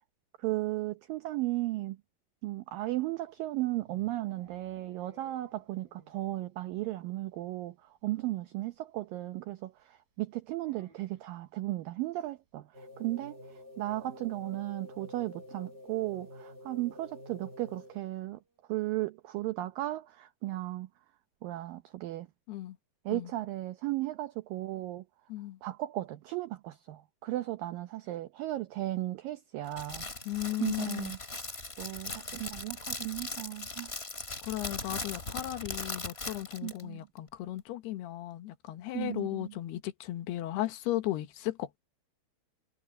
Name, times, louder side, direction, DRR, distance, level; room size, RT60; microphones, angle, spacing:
voice 1, 0.4-2.0 2.4-18.4 18.7-20.9 21.4-22.3 23.1-25.1 25.6-30.1 30.6-31.2 31.8-33.9 36.6-37.0 38.9-39.5, right 16 dB, 75° right, 2.2 m, -35 dB
sound 1, 3.3-6.4 6.6-6.7 7.0-7.1 7.4-7.5 8.7-8.8 10.5-11.4, right 1 dB, 60° right, 5.9 m, -61 dB
sound 2, 12.7-18.2, left 1 dB, 25° right, 1.5 m, -49 dB
Crackle, 29.7-36.8, left 3 dB, 20° left, 2.2 m, -39 dB
voice 2, 30.3-31.1 34.4-41.8, left 15 dB, 75° left, 3.4 m, -36 dB
omnidirectional pair, 4.8 m